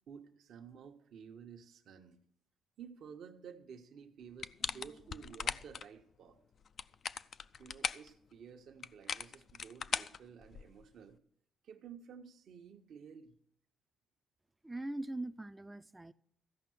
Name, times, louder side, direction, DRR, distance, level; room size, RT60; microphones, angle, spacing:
voice 1, 0.1-2.2 2.8-6.4 7.6-11.2 11.6-13.4, right 7 dB, 70° right, 1.0 m, -53 dB
sound 1, 4.4-5.8 6.6-8.1 8.8-10.8, left 6 dB, 55° left, 0.4 m, -39 dB
voice 2, 14.6-16.1, right 2 dB, 15° right, 0.4 m, -41 dB
14.5 x 5.5 x 7.8 m
cardioid pair, 90°, 0 cm